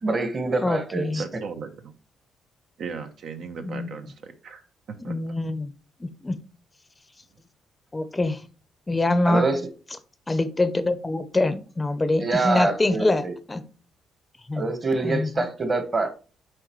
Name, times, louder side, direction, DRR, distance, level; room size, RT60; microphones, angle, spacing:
voice 1, 0.0-1.2 9.3-9.6 12.2-13.3 14.6-16.1, right 3 dB, 35° right, 1.4 m, -25 dB
voice 2, 0.6-1.2 3.6-3.9 5.1-5.7 6.0-6.4 7.9-8.4 8.9-9.5 10.3-13.2 13.5-13.6 14.5-14.6 15.0-15.5, left 2 dB, 20° left, 0.6 m, -24 dB
voice 3, 1.2-1.9 2.8-4.6 4.9-5.3, right 5 dB, 65° right, 0.8 m, -37 dB
7.7 x 4.9 x 3.1 m
cardioid pair, 90°, 0 cm